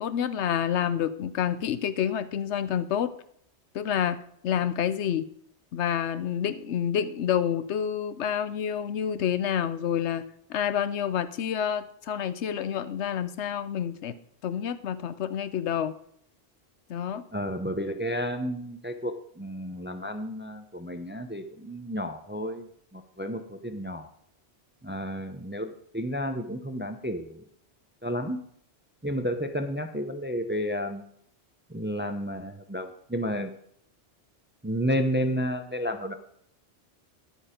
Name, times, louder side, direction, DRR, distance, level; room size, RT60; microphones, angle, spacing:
voice 1, 0.0-3.1 3.7-4.2 4.4-5.3 5.7-10.2 10.5-14.1 14.4-16.0 16.9-17.2, left 9 dB, 85° left, 14 dB, 1.0 m, -28 dB
voice 2, 17.3-22.7 22.9-24.1 24.8-27.4 28.0-28.4 29.0-31.0 31.7-33.5 34.6-36.1, equal, 15° right, 7 dB, 0.5 m, -31 dB
10.0 x 8.7 x 5.0 m, 0.67 s
omnidirectional pair, 1.1 m